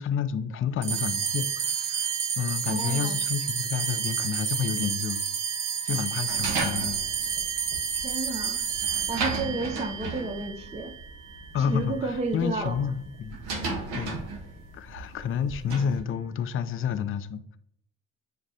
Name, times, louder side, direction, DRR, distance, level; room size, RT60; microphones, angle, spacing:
voice 1, 0.0-5.2 5.8-7.0 9.3-9.6 11.5-13.4 14.0-14.2 14.7-17.6, left 7 dB, 35° left, 12 dB, 0.4 m, -30 dB
sound 1, 0.8-11.5, right 7 dB, 55° right, 0.8 m, -30 dB
voice 2, 2.7-3.2 8.0-10.9 11.6-12.8, right 3 dB, 15° right, 5 dB, 0.5 m, -32 dB
sound 2, 6.3-16.0, right 3 dB, 80° right, 1.2 m, -36 dB
7.2 x 2.5 x 2.7 m, 0.70 s
hypercardioid pair, 60°, 38 cm